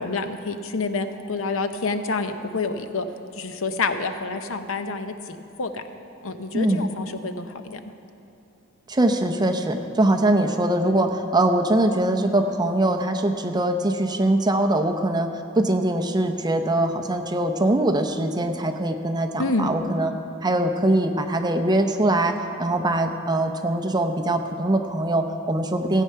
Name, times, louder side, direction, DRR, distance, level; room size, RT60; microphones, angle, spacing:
voice 1, 0.0-3.1 3.3-5.8 6.2-7.8 19.4-19.7, left 3 dB, 70° left, 8 dB, 0.7 m, -28 dB
voice 2, 6.5-6.9 8.9-15.3 15.6-20.1 20.4-26.0, right 1 dB, 20° right, 6 dB, 0.7 m, -22 dB
16.0 x 8.3 x 5.6 m, 2.8 s
head